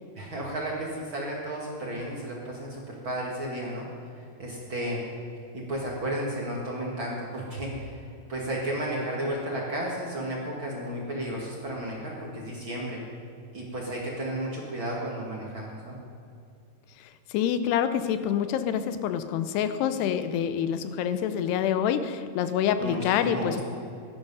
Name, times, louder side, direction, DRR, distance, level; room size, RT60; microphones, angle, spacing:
voice 1, 0.2-3.9 4.4-5.0 5.5-13.0 13.5-16.0 22.8-23.0 23.2-23.6, right 1 dB, 40° right, -3 dB, 1.9 m, -33 dB
voice 2, 17.0-23.6, left 9 dB, 90° left, 11 dB, 2.9 m, -27 dB
15.5 x 12.5 x 5.4 m, 2.5 s
omnidirectional pair, 4.6 m